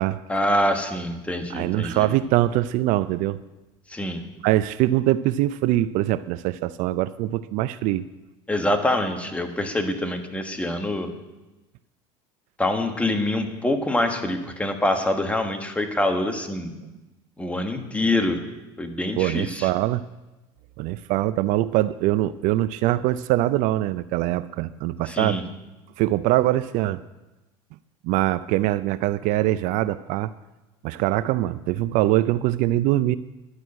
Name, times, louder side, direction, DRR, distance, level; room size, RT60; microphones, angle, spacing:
voice 1, 0.3-2.1 3.9-4.2 8.5-11.1 12.6-16.7 17.4-18.4 18.8-19.7 25.1-25.4, left 1 dB, 10° left, 5 dB, 1.4 m, -25 dB
voice 2, 1.5-3.4 4.4-8.0 19.2-20.0 20.8-25.4 26.0-27.0 28.0-30.3 30.8-33.2, right 15 dB, 60° right, 15 dB, 0.4 m, -23 dB
11.0 x 6.3 x 8.7 m, 1.1 s
supercardioid pair, 105°, 15 cm